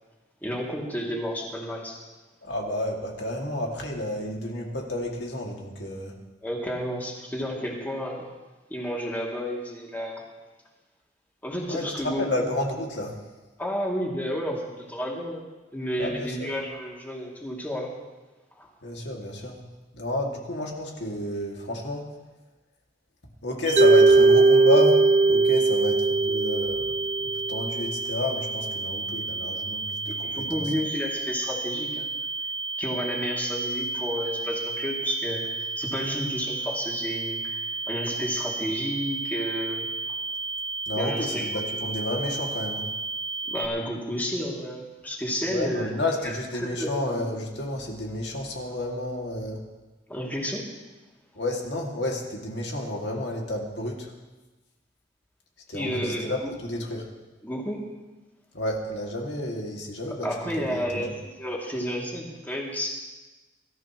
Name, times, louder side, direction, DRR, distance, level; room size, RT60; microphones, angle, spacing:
voice 1, 0.4-2.0 6.4-8.2 8.7-10.2 11.4-12.3 13.6-15.4 15.7-17.9 18.5-18.7 30.1-32.1 32.8-39.9 40.9-41.6 43.5-45.9 46.2-47.3 50.1-50.7 55.7-56.5 57.4-57.8 60.2-62.9, equal, 10° left, -3 dB, 2.7 m, -31 dB
voice 2, 2.4-6.2 11.6-13.2 16.0-16.5 18.8-19.6 19.9-22.1 23.4-26.9 27.5-30.7 40.9-42.9 45.5-49.6 51.3-54.1 55.7-57.1 58.5-61.1, left 1 dB, 65° left, 0 dB, 2.4 m, -31 dB
sound 1, 23.7-43.7, right 3 dB, 90° right, 1.2 m, -32 dB
Mallet percussion, 23.8-27.9, right 3 dB, 35° right, 0.5 m, -19 dB
24.0 x 14.0 x 3.1 m, 1.2 s
head